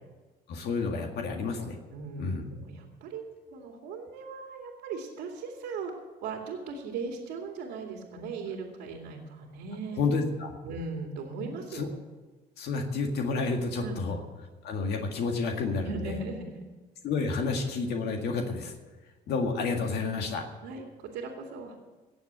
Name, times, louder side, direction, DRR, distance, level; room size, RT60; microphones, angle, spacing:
voice 1, 0.5-1.8 2.2-2.5 10.0-10.5 11.7-11.9 12.6-14.2 14.6-16.2 17.0-18.7 19.3-20.5, left 4 dB, 75° left, 3 dB, 1.9 m, -30 dB
voice 2, 1.9-3.2 3.5-5.9 6.2-10.0 10.6-11.9 13.8-14.1 15.8-16.6 20.6-21.8, right 4 dB, 90° right, 2 dB, 2.4 m, -38 dB
18.0 x 7.2 x 8.8 m, 1.2 s
cardioid pair, 110°, 17 cm